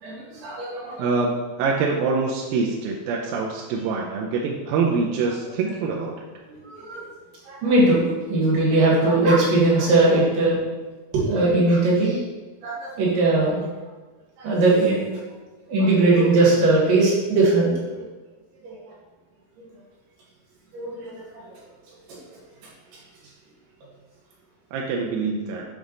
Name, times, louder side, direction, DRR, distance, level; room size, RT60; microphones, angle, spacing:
voice 1, 0.0-0.9 6.4-7.1 7.5-8.0 8.3-10.6 11.1-12.2 12.6-13.6 14.4-15.0 15.7-18.0 18.6-18.8 19.6-19.7 20.7-21.2, right 2 dB, 60° right, -6 dB, 3.4 m, -20 dB
voice 2, 1.0-6.3 24.7-25.7, right 4 dB, 80° right, -1 dB, 2.2 m, -25 dB
7.2 x 4.7 x 3.9 m, 1.2 s
omnidirectional pair, 4.6 m